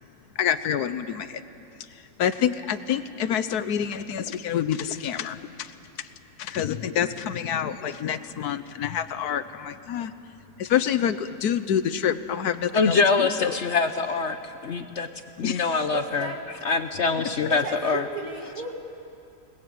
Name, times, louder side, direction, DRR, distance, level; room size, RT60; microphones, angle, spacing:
voice 1, 0.4-1.4 2.2-5.7 6.4-10.1 10.6-13.6 15.4-15.6, left 9 dB, 75° left, 12 dB, 1.3 m, -27 dB
voice 2, 12.7-15.1 15.4-16.3 16.6-18.1, left 4 dB, 55° left, 9 dB, 1.0 m, -24 dB
voice 3, 15.9-16.4 17.5-18.7, right 3 dB, 65° right, 3 dB, 2.5 m, -34 dB
27.5 x 20.5 x 7.7 m, 2.7 s
omnidirectional pair, 1.7 m